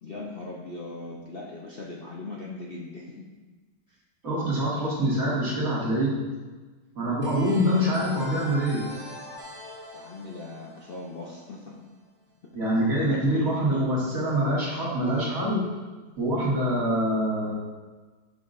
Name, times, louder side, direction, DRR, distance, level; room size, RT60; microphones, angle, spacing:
voice 1, 0.0-3.3 3.9-4.0 7.4-8.0 9.9-11.7 12.9-13.9, left 2 dB, 55° left, -4 dB, 0.7 m, -39 dB
voice 2, 4.2-6.2 7.0-8.8 12.5-15.6 16.2-17.5, equal, 55° right, -7 dB, 2.2 m, -25 dB
sound 1, 7.2-11.8, left 1 dB, 15° left, 1.6 m, -43 dB
7.9 x 5.7 x 2.5 m, 1.3 s
omnidirectional pair, 1.8 m